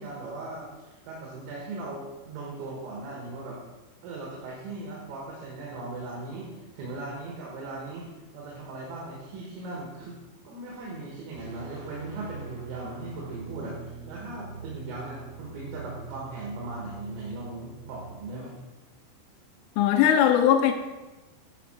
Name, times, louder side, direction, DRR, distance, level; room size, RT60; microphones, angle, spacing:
voice 1, 0.0-3.6 4.0-8.1 8.3-10.2 10.5-18.5, right 2 dB, 75° right, -4 dB, 3.6 m, -38 dB
sound 1, 11.3-18.2, right 4 dB, 50° right, 4.0 m, -43 dB
voice 2, 19.8-20.7, left 9 dB, 85° left, 4 dB, 3.1 m, -19 dB
11.0 x 5.2 x 4.4 m, 1.2 s
omnidirectional pair, 5.6 m